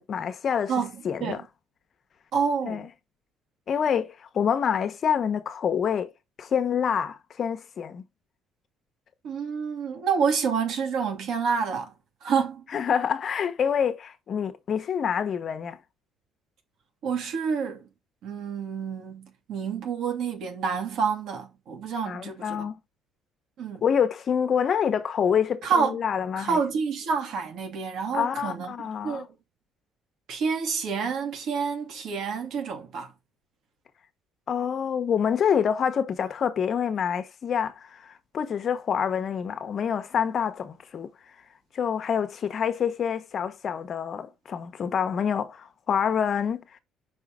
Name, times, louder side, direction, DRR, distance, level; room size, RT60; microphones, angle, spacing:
voice 1, 0.0-0.7 1.0-1.4 2.7-2.8 3.7-6.1 6.4-8.0 12.7-15.8 22.1-22.8 23.8-26.6 28.1-29.3 34.5-41.1 41.7-46.8, left 7 dB, 40° left, 1.0 m, -27 dB
voice 2, 0.7-1.5 2.3-2.9 9.2-11.9 12.2-12.6 17.0-17.9 18.2-22.7 23.6-23.8 25.6-26.0 26.4-28.7 29.0-29.2 30.3-33.1, right 6 dB, 65° right, 2.5 m, -28 dB
6.0 x 5.5 x 3.7 m
cardioid pair, 140°, 0 cm